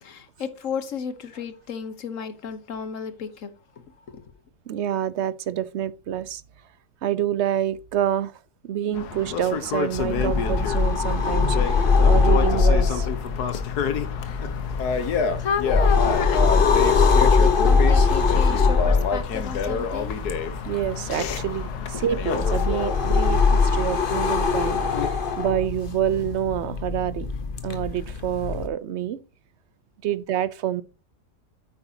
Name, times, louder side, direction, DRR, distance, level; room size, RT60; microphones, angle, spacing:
voice 1, 0.0-3.5 14.5-14.6 15.4-20.2, left 6 dB, 55° left, 1.4 m, -32 dB
voice 2, 4.7-6.4 7.0-8.3 8.6-13.1 20.7-27.3 27.6-29.2 30.0-30.8, right 10 dB, 60° right, 0.8 m, -27 dB
sound 1, 8.9-25.1, left 6 dB, 75° left, 1.6 m, -30 dB
sound 2, 9.9-28.7, left 4 dB, 40° left, 1.1 m, -22 dB
9.1 x 9.0 x 2.9 m
omnidirectional pair, 1.7 m